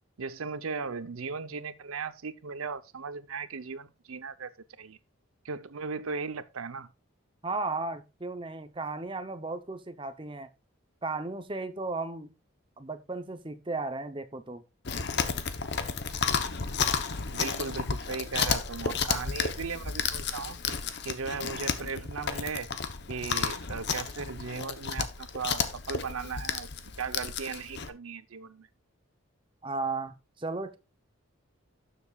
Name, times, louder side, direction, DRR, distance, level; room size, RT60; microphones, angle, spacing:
voice 1, 0.2-4.5 4.8-5.0 5.4-6.9 17.3-20.6 21.0-22.7 23.1-26.7 27.0-28.7, right 5 dB, 85° right, 0.8 m, -37 dB
voice 2, 7.4-10.5 11.0-12.3 12.8-14.6 29.6-30.8, right 3 dB, 25° right, 0.7 m, -35 dB
Chewing mastication, 14.8-27.9, left 6 dB, 50° left, 0.8 m, -32 dB
12.5 x 7.0 x 2.4 m
head